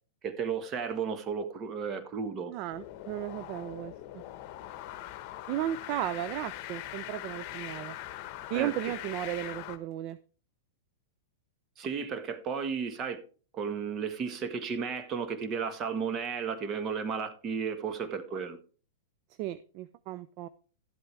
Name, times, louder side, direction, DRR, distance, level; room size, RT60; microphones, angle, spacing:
voice 1, 0.2-2.5 8.5-8.7 11.8-13.2 13.5-18.6, right 6 dB, 30° right, 1.4 m, -33 dB
voice 2, 2.5-4.2 5.5-8.0 8.5-10.2 19.4-20.5, right 13 dB, 45° right, 0.5 m, -35 dB
sound 1, 2.7-9.8, left 14 dB, 45° left, 1.1 m, -42 dB
12.0 x 7.9 x 3.3 m
hypercardioid pair, 125°, 0 cm